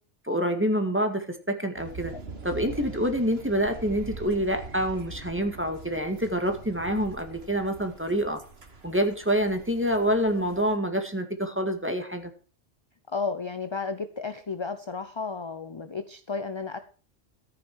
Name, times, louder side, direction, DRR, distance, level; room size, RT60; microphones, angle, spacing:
voice 1, 0.2-2.1 2.4-8.4 8.8-12.3, equal, 10° right, 5 dB, 1.9 m, -27 dB
sound 1, 1.8-10.8, right 4 dB, 60° right, 2.0 m, -43 dB
voice 2, 13.1-16.8, left 4 dB, 25° left, 10 dB, 0.7 m, -33 dB
14.0 x 9.0 x 4.7 m, 0.39 s
omnidirectional pair, 1.2 m